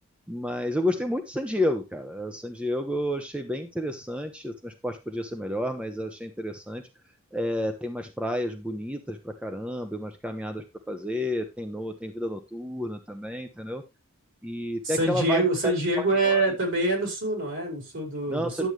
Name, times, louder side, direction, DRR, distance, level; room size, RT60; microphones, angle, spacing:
voice 1, 0.3-6.8 7.3-13.8 14.4-16.4 18.3-18.7, equal, 5° right, 0.8 m, -31 dB
voice 2, 14.8-18.7, right 2 dB, 60° right, 4.9 m, -25 dB
11.0 x 7.9 x 3.2 m
head